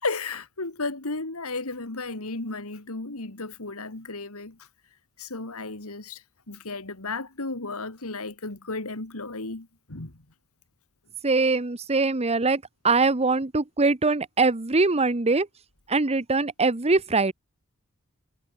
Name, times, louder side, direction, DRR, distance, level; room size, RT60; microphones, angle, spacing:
voice 1, 0.0-4.6 5.2-10.2, left 3 dB, 70° left, 2.5 m, -34 dB
voice 2, 11.2-15.5 15.9-17.3, right 3 dB, 30° right, 1.1 m, -22 dB
head